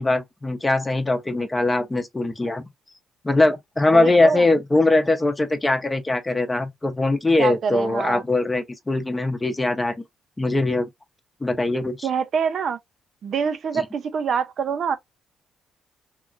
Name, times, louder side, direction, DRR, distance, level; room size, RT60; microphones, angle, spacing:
voice 1, 0.0-2.6 3.2-9.9 10.4-10.9 11.4-12.1, left 2 dB, 20° left, 0.7 m, -21 dB
voice 2, 3.9-4.4 7.4-8.2 12.0-12.8 13.2-15.0, right 6 dB, 60° right, 0.4 m, -25 dB
2.9 x 2.4 x 2.4 m
cardioid pair, 90°, 0 cm